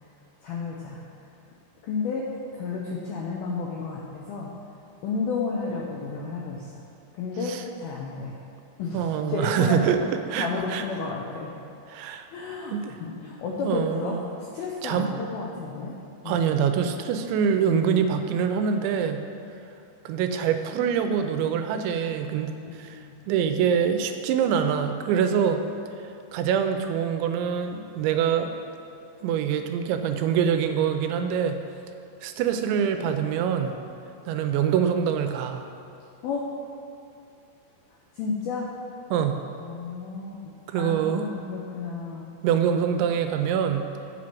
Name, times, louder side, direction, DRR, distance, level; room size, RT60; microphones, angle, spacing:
voice 1, 0.4-1.0 1.8-2.3 2.5-4.5 5.0-6.7 7.1-8.4 8.8-10.0 10.4-11.5 12.3-14.2 14.5-16.0 16.2-16.6 22.9-23.2 36.2-36.5 38.1-38.7 39.6-42.4, left 4 dB, 85° left, -2 dB, 2.1 m, -32 dB
voice 2, 8.9-10.0 10.3-10.8 11.9-12.3 12.7-12.9 13.7-14.3 14.8-15.1 16.3-19.2 20.1-22.5 22.8-23.0 23.3-25.6 26.3-28.6 29.2-31.6 32.2-33.8 34.3-35.7 39.1-39.4 40.7-41.3 42.4-43.9, right 7 dB, 85° right, 7 dB, 2.9 m, -25 dB
8.3 x 6.2 x 5.9 m, 2.6 s
omnidirectional pair, 5.2 m